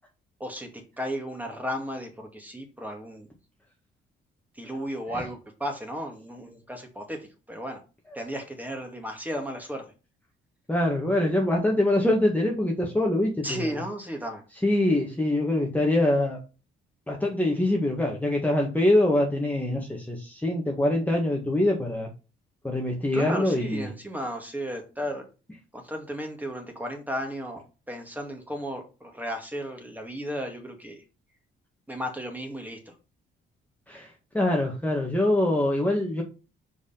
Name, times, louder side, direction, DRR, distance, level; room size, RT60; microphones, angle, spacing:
voice 1, 0.4-3.3 4.6-7.8 8.1-9.8 13.4-14.4 23.1-25.2 25.7-31.0 31.9-32.9, equal, 10° right, 3 dB, 2.1 m, -34 dB
voice 2, 10.7-13.8 14.6-16.4 17.1-22.1 22.6-23.9 33.9-36.2, left 1 dB, 10° left, -1 dB, 1.7 m, -24 dB
5.1 x 4.8 x 5.6 m, 0.32 s
cardioid pair, 90°, 20 cm